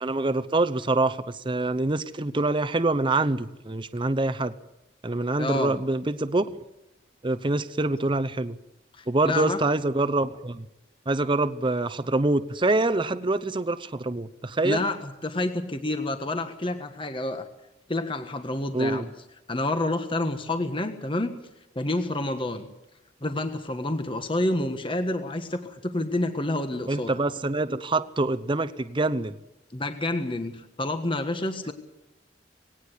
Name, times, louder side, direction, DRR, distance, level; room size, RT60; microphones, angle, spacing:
voice 1, 0.0-4.5 5.0-6.6 7.2-8.6 9.1-10.7 11.1-14.8 18.7-19.0 26.9-29.3, right 2 dB, 30° right, 12 dB, 0.8 m, -25 dB
voice 2, 5.4-5.7 8.9-9.6 14.6-17.5 17.9-19.1 19.5-21.4 21.7-22.7 23.2-27.1 29.7-31.7, left 2 dB, 30° left, 7 dB, 1.4 m, -28 dB
19.0 x 18.0 x 8.3 m, 0.89 s
head